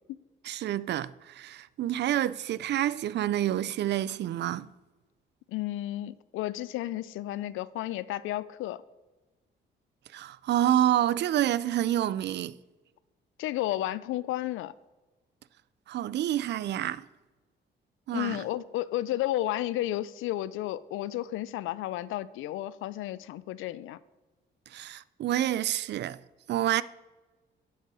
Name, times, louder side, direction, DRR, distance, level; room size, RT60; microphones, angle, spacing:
voice 1, 0.4-4.7 10.1-12.6 15.9-17.0 18.1-18.4 24.7-26.2 26.5-26.8, right 12 dB, 60° right, 0.4 m, -28 dB
voice 2, 5.5-8.8 13.4-14.7 18.1-24.0, left 14 dB, 85° left, 0.4 m, -32 dB
11.0 x 5.6 x 4.8 m
cardioid pair, 90°, 20 cm